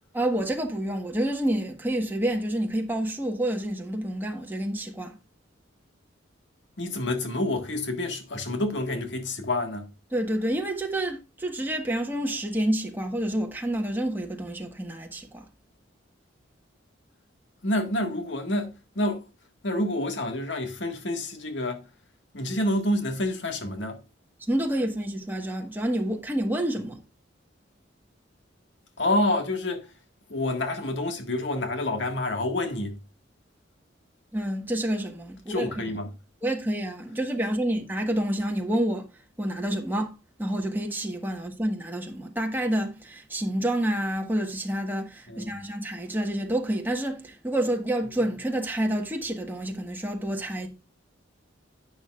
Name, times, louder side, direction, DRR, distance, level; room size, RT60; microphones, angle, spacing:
voice 1, 0.1-5.2 10.1-15.5 24.5-27.0 34.3-35.7 36.4-39.1 39.4-40.1 40.4-50.7, right 1 dB, 10° right, 1.3 m, -28 dB
voice 2, 6.8-9.9 17.6-19.3 19.6-21.9 22.3-24.0 29.0-29.9 30.3-33.0 35.5-36.1 45.3-45.5, left 1 dB, 70° left, 1.8 m, -28 dB
11.0 x 8.4 x 2.4 m
head